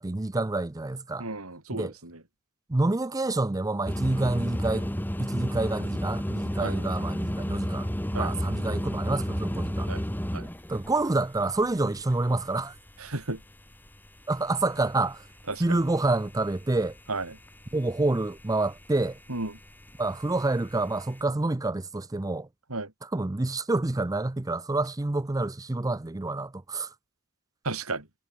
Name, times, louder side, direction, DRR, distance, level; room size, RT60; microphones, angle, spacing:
voice 1, 0.0-1.3 1.7-1.9 2.7-4.9 5.2-9.9 10.7-12.8 14.3-15.2 15.6-17.0 17.7-19.2 20.0-22.5 23.0-26.9, right 2 dB, 15° right, 0.5 m, -28 dB
voice 2, 1.2-2.2 6.6-6.8 8.1-8.3 9.9-10.0 10.3-10.5 13.0-13.4 15.5-15.8 17.1-17.3 19.3-19.5 22.7-22.9 27.6-28.1, right 3 dB, 75° right, 4.3 m, -33 dB
sound 1, 3.9-14.1 14.3-21.2, equal, 10° left, 2.1 m, -32 dB
head